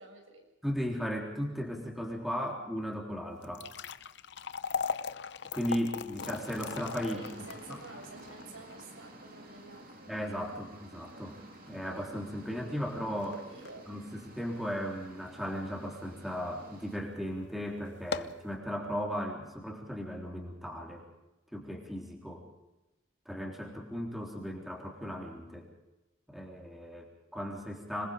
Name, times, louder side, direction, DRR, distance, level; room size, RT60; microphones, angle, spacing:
voice 1, 0.0-0.5 7.1-10.1 13.2-13.9, right 2 dB, 85° right, 3 dB, 6.5 m, -50 dB
voice 2, 0.6-3.7 5.5-7.2 7.7-7.8 10.1-11.4 11.7-13.4 13.9-21.0 21.5-22.5 23.3-25.7 26.3-28.1, equal, ahead, -1 dB, 3.6 m, -36 dB
sound 1, 3.3-15.6 16.1-16.2 16.9-17.0 17.4-17.5 17.9-18.5, left 5 dB, 60° left, 0.8 m, -40 dB
sound 2, 6.2-17.0, right 1 dB, 45° right, 2.9 m, -51 dB
26.5 x 21.0 x 5.1 m, 0.98 s
head